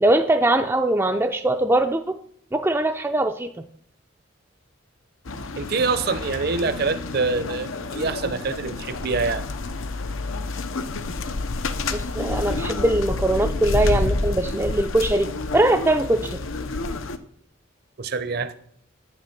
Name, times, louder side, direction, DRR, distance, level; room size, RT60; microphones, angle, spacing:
voice 1, 0.0-2.2 2.5-3.5 11.9-16.4, right 1 dB, 10° right, 5 dB, 0.4 m, -21 dB
sound 1, 5.2-17.2, left 3 dB, 85° left, 0.8 m, -29 dB
voice 2, 5.6-9.5 18.0-18.6, right 4 dB, 50° right, 12 dB, 0.7 m, -25 dB
10.0 x 9.0 x 6.0 m, 0.67 s
head